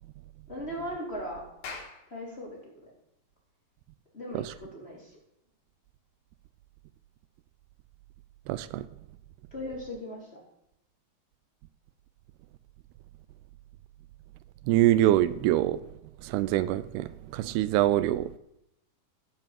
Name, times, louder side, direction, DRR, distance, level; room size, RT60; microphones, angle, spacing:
voice 1, 0.5-1.4 2.1-2.9 4.1-5.2 9.5-10.4, equal, 15° left, 3.4 m, -38 dB
Clapping, 1.6-6.3, left 4 dB, 65° left, 4.3 m, -48 dB
voice 2, 8.5-8.9 14.7-15.8 16.2-18.4, right 14 dB, 85° right, 2.6 m, -24 dB
16.0 x 7.6 x 7.6 m
omnidirectional pair, 4.6 m